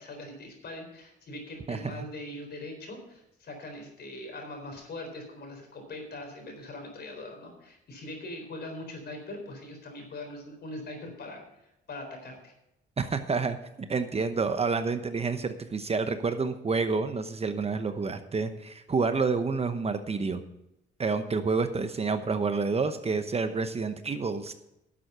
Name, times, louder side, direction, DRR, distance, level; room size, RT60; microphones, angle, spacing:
voice 1, 0.0-12.5, left 1 dB, 55° left, 3 dB, 4.2 m, -42 dB
voice 2, 13.0-20.4 21.0-24.5, right 4 dB, 30° right, 9 dB, 0.9 m, -29 dB
11.5 x 7.9 x 5.6 m, 0.85 s
cardioid pair, 90°, 20 cm